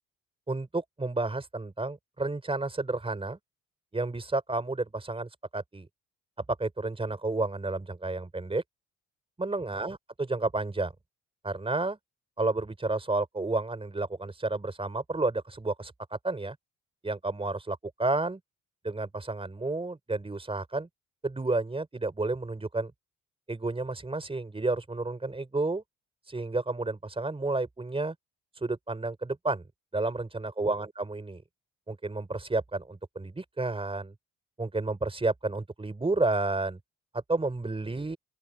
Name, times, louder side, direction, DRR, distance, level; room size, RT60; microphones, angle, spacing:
voice 1, 0.5-3.4 3.9-5.9 6.6-8.6 9.4-10.9 11.4-12.0 12.4-16.6 17.0-18.4 18.8-20.9 21.2-22.9 23.5-25.8 26.2-28.1 28.5-29.6 29.9-31.4 31.9-34.1 34.6-36.8 37.1-38.2, right 2 dB, 20° right, 4.9 m, -31 dB
open air
cardioid pair, 90°, 30 cm